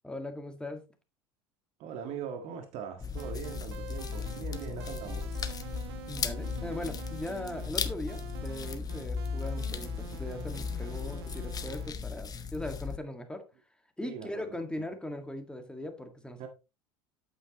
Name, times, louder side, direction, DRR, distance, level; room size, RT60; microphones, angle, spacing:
voice 1, 0.0-0.9 6.1-13.4 14.0-16.5, left 1 dB, 5° left, 1.8 m, -39 dB
voice 2, 1.8-5.4 10.8-11.0 14.0-14.9 16.4-16.5, right 7 dB, 55° right, 1.7 m, -41 dB
sound 1, 3.0-13.0, left 6 dB, 30° left, 1.1 m, -36 dB
sound 2, 3.2-11.9, right 9 dB, 75° right, 1.2 m, -47 dB
8.7 x 8.0 x 3.0 m
hypercardioid pair, 80°, 13 cm